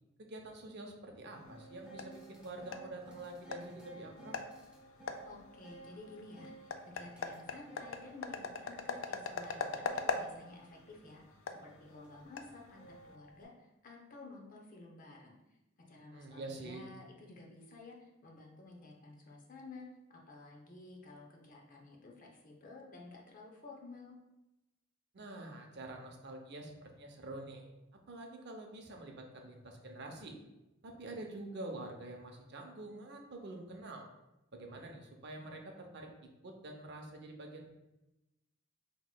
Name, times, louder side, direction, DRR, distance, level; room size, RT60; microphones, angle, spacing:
voice 1, 0.2-4.3 16.1-16.8 25.1-27.7 28.1-30.4 30.8-34.1 34.5-36.1 36.4-37.7, right 2 dB, 55° right, 3 dB, 0.6 m, -47 dB
sound 1, 1.3-13.2, left 5 dB, 70° left, 0.4 m, -43 dB
sound 2, 1.4-13.4, right 1 dB, 5° right, 0.8 m, -56 dB
voice 2, 5.2-15.6 15.9-24.1, left 3 dB, 40° left, 0 dB, 0.7 m, -53 dB
5.9 x 2.9 x 2.2 m, 0.96 s
head